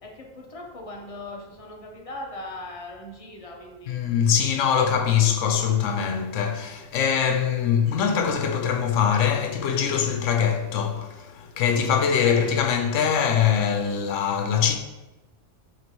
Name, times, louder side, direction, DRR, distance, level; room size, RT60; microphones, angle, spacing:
voice 1, 0.0-4.0 4.5-5.2 12.1-12.3, left 2 dB, 35° left, 0.6 m, -40 dB
voice 2, 3.9-14.8, left 7 dB, 80° left, 0.9 m, -23 dB
5.2 x 3.1 x 3.0 m
omnidirectional pair, 1.3 m